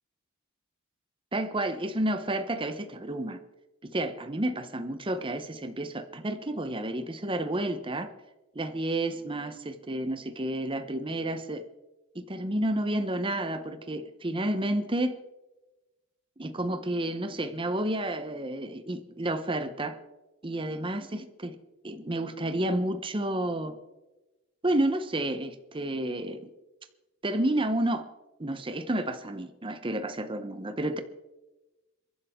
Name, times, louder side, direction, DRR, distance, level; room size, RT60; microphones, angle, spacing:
voice 1, 1.3-3.4 3.8-8.1 8.5-11.6 12.1-15.2 16.4-20.0 20.4-21.6 21.8-23.8 24.6-26.5 27.2-28.0 28.4-31.0, right 1 dB, 25° right, 9 dB, 0.8 m, -30 dB
27.5 x 11.5 x 3.7 m, 1.1 s
head